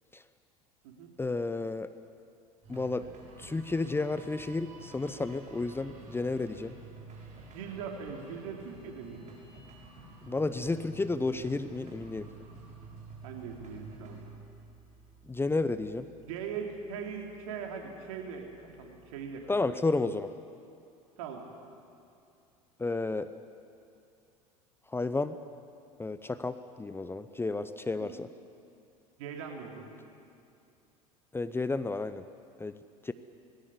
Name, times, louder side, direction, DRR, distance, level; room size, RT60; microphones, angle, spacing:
voice 1, 1.2-1.9 2.7-3.1 3.4-6.8 10.2-12.3 15.3-16.1 19.5-20.3 22.8-23.3 24.9-25.4 26.0-28.3 31.3-32.2 32.6-32.7 33.0-33.1, left 3 dB, 10° left, 12 dB, 0.8 m, -32 dB
sound 1, 2.6-19.7, right 3 dB, 40° right, 7.2 m, -51 dB
voice 2, 7.5-9.3 13.2-14.3 16.2-19.7 21.2-21.4 28.0-28.1 29.2-29.8, right 6 dB, 65° right, 2 dB, 3.4 m, -40 dB
20.0 x 17.5 x 9.9 m, 2.5 s
hypercardioid pair, 75°, 19 cm